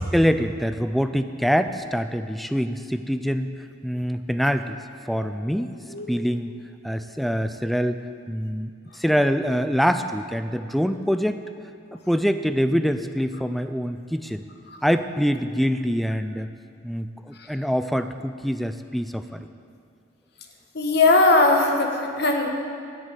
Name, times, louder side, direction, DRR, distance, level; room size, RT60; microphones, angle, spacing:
voice 1, 0.0-3.5 3.8-4.8 5.1-5.7 6.1-6.5 6.8-11.4 11.9-14.4 14.8-16.5 16.8-19.5, equal, ahead, 10 dB, 0.3 m, -25 dB
voice 2, 20.7-22.5, left 2 dB, 55° left, 3 dB, 1.2 m, -19 dB
10.5 x 6.6 x 8.4 m, 2.3 s
head